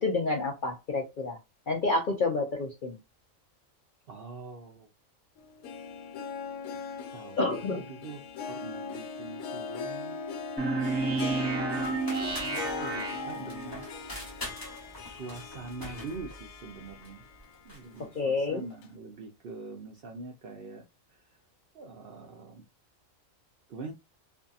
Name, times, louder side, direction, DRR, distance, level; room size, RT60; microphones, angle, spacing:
voice 1, 0.0-1.4 1.7-3.0 7.4-7.8 18.1-18.6, left 3 dB, 55° left, 0.5 m, -29 dB
voice 2, 4.1-4.9 7.1-7.4 7.8-8.2 8.5-10.2 11.0-12.0 12.3-13.8 15.0-17.2 17.6-20.8 21.1-21.2 21.7-22.6 23.7-23.9, right 3 dB, 60° right, 0.6 m, -44 dB
Harp, 5.4-17.5 17.9-18.0 18.8-18.9, left 5 dB, 80° left, 1.0 m, -40 dB
sound 1, 10.6-13.9, right 3 dB, 5° right, 1.1 m, -31 dB
sound 2, 11.8-18.1, left 1 dB, 15° left, 1.1 m, -44 dB
2.6 x 2.6 x 2.3 m
omnidirectional pair, 1.4 m